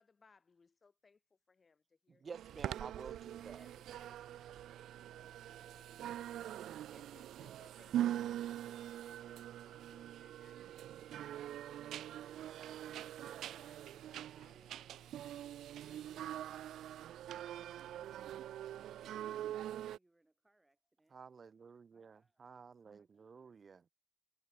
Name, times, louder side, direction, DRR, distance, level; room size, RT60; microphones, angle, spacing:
voice 1, 0.0-2.7 3.4-5.2 5.5-6.2 6.6-15.1 15.7-16.6, left 4 dB, 40° left, 4.7 m, -69 dB
voice 2, 2.2-3.7 21.1-23.8, right 5 dB, 45° right, 0.8 m, -52 dB
sound 1, 2.3-20.0, right 12 dB, 70° right, 0.3 m, -43 dB
voice 3, 17.1-21.2 21.9-22.6 23.0-23.6, right 2 dB, 15° right, 3.4 m, -75 dB
hypercardioid pair, 45°, 0 cm